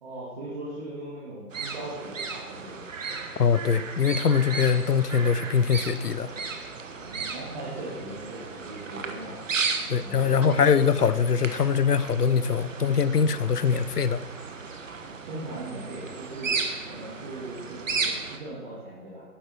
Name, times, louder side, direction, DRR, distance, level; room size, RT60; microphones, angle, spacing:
voice 1, 0.0-2.8 7.0-9.3 10.0-10.5 15.3-16.6 16.8-19.2, right 2 dB, 30° right, -7 dB, 2.4 m, -39 dB
sound 1, 1.5-18.4, right 4 dB, 55° right, 1.3 m, -35 dB
voice 2, 3.4-6.3 9.9-14.2, left 6 dB, 75° left, 15 dB, 0.8 m, -23 dB
12.5 x 10.5 x 4.5 m, 1.2 s
figure-of-eight pair, 145°, 47 cm